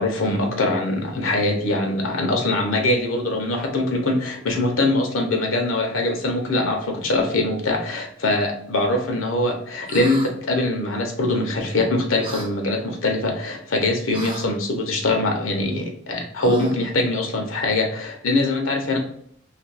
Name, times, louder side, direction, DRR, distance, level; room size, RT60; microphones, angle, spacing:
voice 1, 0.0-19.0, left 2 dB, 90° left, 2 dB, 0.8 m, -23 dB
sound 1, 9.9-10.3 12.2-12.5 14.1-14.5 16.4-16.9, right 2 dB, 25° right, 0.5 m, -32 dB
2.6 x 2.5 x 3.9 m, 0.65 s
head